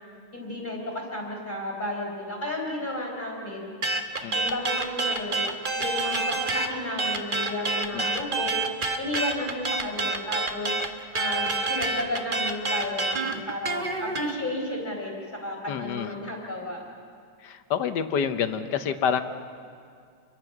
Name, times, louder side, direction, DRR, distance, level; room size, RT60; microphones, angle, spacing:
voice 1, 0.3-3.7 4.3-5.4 5.8-10.7 11.1-16.8, left 1 dB, 20° left, 0 dB, 4.2 m, -33 dB
sound 1, 3.8-6.7 7.0-14.3, right 3 dB, 30° right, 1.1 m, -27 dB
voice 2, 15.7-16.1 17.4-19.2, left 7 dB, 60° left, 10 dB, 1.4 m, -28 dB
28.0 x 22.5 x 6.0 m, 2.2 s
omnidirectional pair, 2.2 m